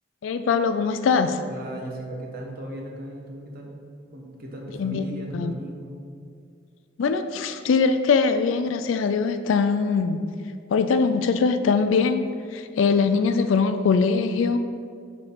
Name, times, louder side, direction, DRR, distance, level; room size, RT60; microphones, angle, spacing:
voice 1, 0.2-1.4 4.8-5.5 7.0-10.3 10.7-12.3 12.5-14.6, left 5 dB, 75° left, 9 dB, 0.4 m, -22 dB
voice 2, 1.5-3.7 4.1-6.0, right 1 dB, 50° right, 0 dB, 1.0 m, -37 dB
5.0 x 4.4 x 5.6 m, 2.2 s
head